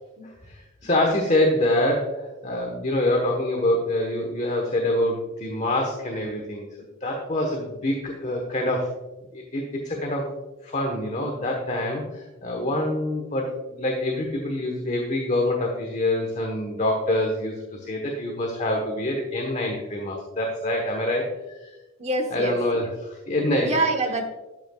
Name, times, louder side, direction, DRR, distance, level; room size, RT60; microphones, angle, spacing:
voice 1, 0.4-6.7 7.0-8.9 9.3-10.3 10.6-21.3 21.6-21.7 22.3-23.7, left 1 dB, 35° left, 1 dB, 1.1 m, -25 dB
voice 2, 22.0-22.9 23.6-24.3, right 2 dB, 30° right, 5 dB, 1.1 m, -26 dB
12.0 x 8.2 x 2.3 m, 1.1 s
head